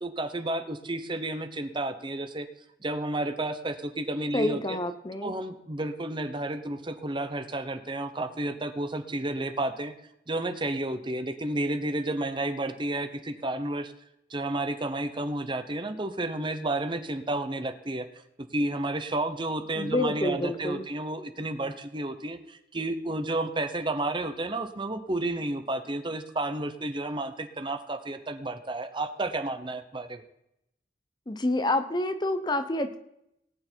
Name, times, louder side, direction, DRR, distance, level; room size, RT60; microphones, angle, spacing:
voice 1, 0.0-2.5 2.8-4.8 5.2-9.9 10.3-13.9 14.3-18.1 18.4-30.2, right 2 dB, 25° right, 9 dB, 1.0 m, -31 dB
voice 2, 4.3-5.4 19.8-20.9 31.3-33.0, left 1 dB, 25° left, 10 dB, 0.8 m, -28 dB
18.5 x 9.4 x 4.6 m, 0.80 s
head